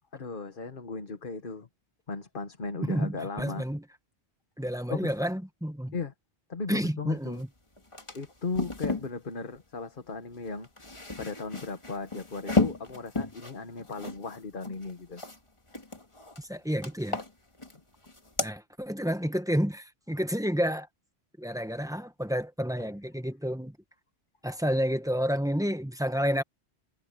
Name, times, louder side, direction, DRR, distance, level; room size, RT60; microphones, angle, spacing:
voice 1, 0.1-1.7 2.1-3.6 4.9-5.1 5.9-6.1 6.5-7.4 8.1-10.7 11.2-15.2, left 4 dB, 50° left, 1.5 m, -37 dB
voice 2, 2.8-3.8 4.6-5.9 6.7-7.5 16.4-17.2 18.4-20.9 21.4-23.8 24.4-26.4, equal, 5° right, 1.2 m, -30 dB
sound 1, 7.4-7.5 7.8-9.1 10.5-15.4 15.7-16.4 16.8-17.8 18.1-18.5, left 3 dB, 30° left, 2.0 m, -33 dB
omnidirectional pair, 1.1 m